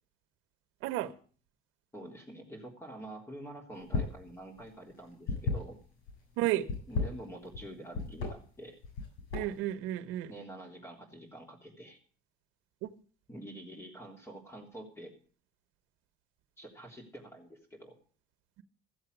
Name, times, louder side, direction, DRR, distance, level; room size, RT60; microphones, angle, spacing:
voice 1, 0.8-1.1 6.4-6.7 9.3-10.3 12.8-12.9, right 14 dB, 85° right, 1.1 m, -32 dB
voice 2, 1.9-5.8 6.9-8.8 10.3-12.0 13.3-15.1 16.6-18.0, right 1 dB, 15° left, 3.6 m, -47 dB
notebook cover, 3.8-4.2 4.5-6.1 6.6-7.6 7.9-8.3 8.8-9.7, left 4 dB, 85° left, 7.4 m, -33 dB
15.0 x 7.9 x 8.1 m
cardioid pair, 110°, 20 cm